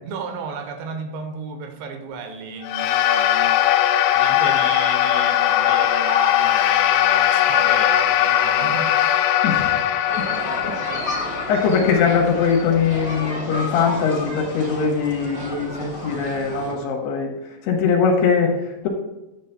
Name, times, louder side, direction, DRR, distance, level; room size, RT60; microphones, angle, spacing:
voice 1, 0.0-3.6 4.1-8.9, right 5 dB, 80° right, 6 dB, 3.0 m, -33 dB
sound 1, 2.6-13.2, left 11 dB, 85° left, 2.3 m, -20 dB
voice 2, 9.4-10.2 10.6-11.0 11.5-17.3 17.6-18.9, left 6 dB, 70° left, 0 dB, 2.9 m, -21 dB
sound 2, 10.1-16.7, equal, 5° right, 1.2 m, -31 dB
10.0 x 9.2 x 2.2 m, 1.0 s
omnidirectional pair, 5.3 m